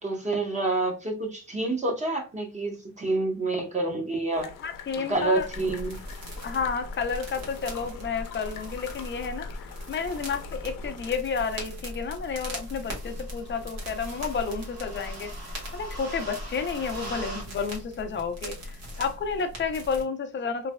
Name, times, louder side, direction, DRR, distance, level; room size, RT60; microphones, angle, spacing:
voice 1, 0.0-4.5 5.1-6.0, right 2 dB, 20° right, 0.9 m, -28 dB
sound 1, 4.3-11.2, left 7 dB, 85° left, 0.6 m, -45 dB
voice 2, 4.6-5.5 6.4-15.3 15.7-18.5 19.0-20.7, left 5 dB, 35° left, 0.6 m, -31 dB
sound 2, 5.4-20.0, equal, 55° right, 1.5 m, -39 dB
3.2 x 3.2 x 2.2 m
cardioid pair, 155°, 32 cm